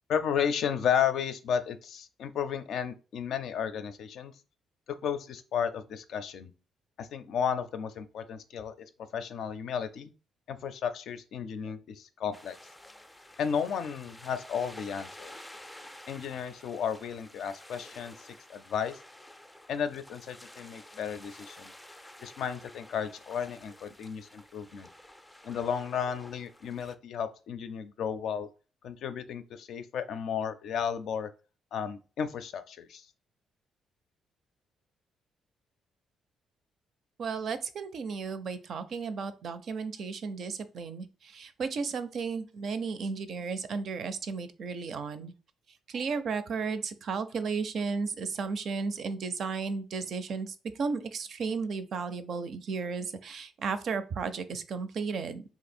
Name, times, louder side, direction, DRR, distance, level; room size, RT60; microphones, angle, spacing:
voice 1, 0.1-4.4 5.0-6.5 7.0-8.9 9.1-10.1 10.5-12.6 13.4-15.3 16.1-19.0 19.7-21.7 22.2-24.9 25.4-28.5 28.8-31.3 31.7-33.1, left 8 dB, 70° left, 10 dB, 0.4 m, -33 dB
sound 1, 12.3-27.0, left 1 dB, 5° left, 0.4 m, -51 dB
voice 2, 37.2-45.3 45.9-55.4, right 5 dB, 60° right, 11 dB, 0.4 m, -34 dB
2.9 x 2.5 x 4.2 m, 0.35 s
cardioid pair, 90°, 0 cm